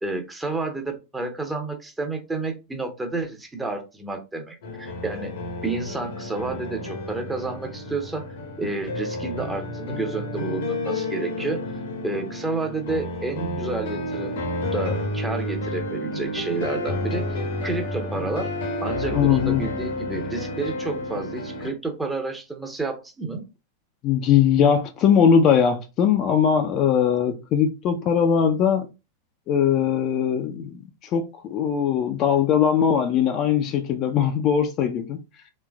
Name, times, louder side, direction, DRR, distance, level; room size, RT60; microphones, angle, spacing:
voice 1, 0.0-5.3 5.6-8.3 8.6-11.6 12.0-14.4 14.7-18.5 18.8-23.4, right 3 dB, 10° right, 0.8 m, -30 dB
sound 1, 4.6-21.7, left 1 dB, 55° left, 0.8 m, -30 dB
voice 2, 19.1-19.6 24.0-28.9 29.5-35.2, left 8 dB, 35° left, 0.5 m, -20 dB
3.4 x 3.1 x 2.2 m
figure-of-eight pair, 90°, 0 cm